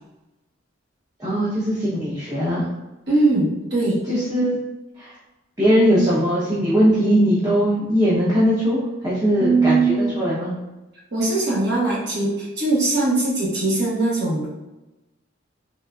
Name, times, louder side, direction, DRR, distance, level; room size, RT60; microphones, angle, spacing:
voice 1, 1.2-2.6 4.1-4.6 5.0-5.1 5.6-10.5, equal, 15° right, -10 dB, 0.6 m, -20 dB
voice 2, 3.1-4.1 9.4-10.1 11.1-14.5, right 3 dB, 55° right, -6 dB, 1.2 m, -20 dB
3.7 x 2.4 x 2.3 m, 1.0 s
head